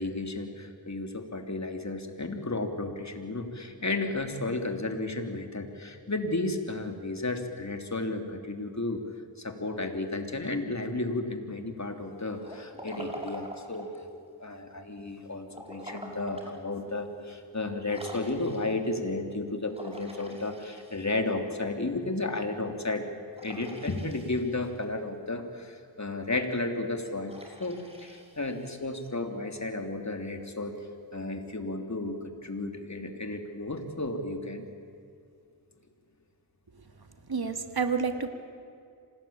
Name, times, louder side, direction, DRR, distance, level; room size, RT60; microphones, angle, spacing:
voice 1, 0.0-9.0 9.4-23.1 23.4-27.3 27.6-30.7 31.1-34.6, left 2 dB, 40° left, 5 dB, 3.2 m, -33 dB
Liquid, 12.4-14.1 15.5-16.6 17.1-17.2 17.9-18.9 19.7-21.3 23.4-24.7 27.3-28.9, equal, 15° right, 5.8 m, -45 dB
voice 2, 37.3-38.3, right 5 dB, 60° right, 7 dB, 2.4 m, -29 dB
26.5 x 19.0 x 8.8 m, 2.4 s
cardioid pair, 45°, 42 cm